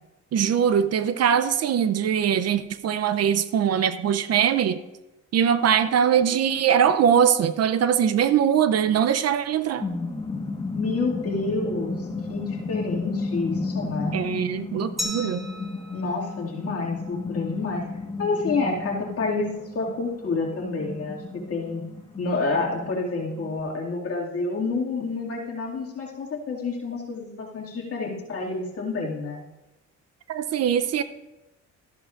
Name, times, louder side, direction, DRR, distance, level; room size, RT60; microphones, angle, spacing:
voice 1, 0.3-4.8 5.3-9.9 14.1-15.5 30.3-31.0, right 8 dB, 55° right, 12 dB, 0.6 m, -22 dB
sound 1, 9.3-23.6, left 3 dB, 20° left, 1.3 m, -33 dB
voice 2, 10.7-14.2 15.9-17.8 18.2-21.8 22.2-29.4, left 3 dB, 50° left, -2 dB, 2.2 m, -29 dB
Glass, 15.0-17.7, left 1 dB, ahead, 1.4 m, -37 dB
13.5 x 11.0 x 2.5 m, 1.0 s
cardioid pair, 90°, 30 cm